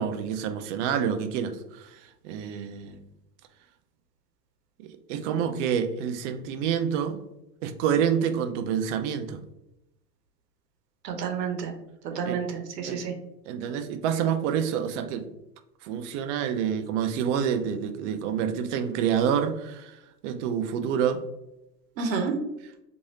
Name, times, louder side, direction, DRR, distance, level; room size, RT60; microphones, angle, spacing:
voice 1, 0.0-1.9 2.2-3.0 4.8-7.2 7.6-9.4 12.2-12.4 12.9-13.0 13.5-15.3 15.8-20.0 20.2-21.2, right 8 dB, 50° right, 9 dB, 0.5 m, -27 dB
voice 2, 11.0-11.7 12.2-13.1 22.0-22.3, right 6 dB, 75° right, 4 dB, 0.8 m, -29 dB
3.1 x 2.6 x 2.7 m, 0.89 s
hypercardioid pair, 105°, 49 cm